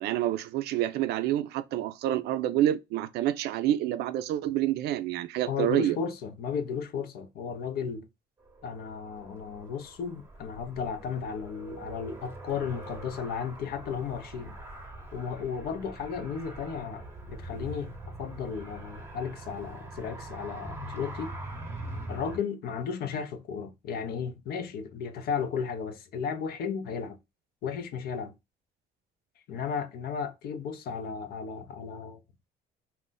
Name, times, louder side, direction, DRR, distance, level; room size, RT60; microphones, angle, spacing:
voice 1, 0.0-6.0, right 13 dB, 75° right, 0.4 m, -28 dB
voice 2, 5.5-8.1 8.6-14.6 15.1-21.3 22.1-27.2 27.6-28.3 29.5-32.2, left 6 dB, 65° left, 0.6 m, -34 dB
Car, 8.4-22.4, right 1 dB, 15° right, 0.8 m, -43 dB
2.5 x 2.2 x 3.8 m
cardioid pair, 110°, 17 cm